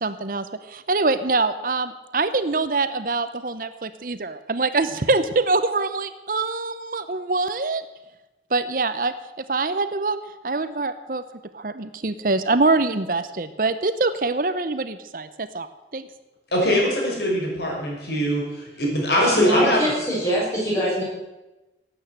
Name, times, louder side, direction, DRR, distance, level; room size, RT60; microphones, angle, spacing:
voice 1, 0.0-7.8 8.5-9.1 9.5-10.2 10.4-11.2 11.5-15.7 15.9-16.0, right 3 dB, 50° right, 12 dB, 0.8 m, -24 dB
voice 2, 16.5-19.9, equal, 70° left, -2 dB, 6.0 m, -22 dB
voice 3, 19.2-21.0, equal, 15° left, -6 dB, 7.0 m, -24 dB
17.5 x 9.0 x 8.0 m, 1.0 s
head